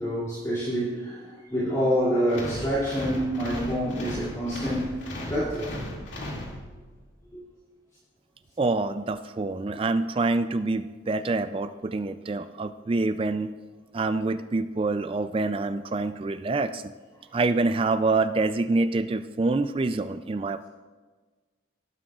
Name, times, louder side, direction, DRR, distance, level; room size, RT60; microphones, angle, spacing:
voice 1, 0.0-4.9 5.3-5.7 7.3-7.4, equal, 20° left, -9 dB, 2.5 m, -27 dB
sound 1, 2.3-7.0, left 1 dB, 70° left, 2.4 m, -36 dB
voice 2, 8.6-13.5 13.9-16.8 17.3-20.6, right 3 dB, 30° right, 11 dB, 0.3 m, -26 dB
18.5 x 11.5 x 2.4 m, 1.4 s
head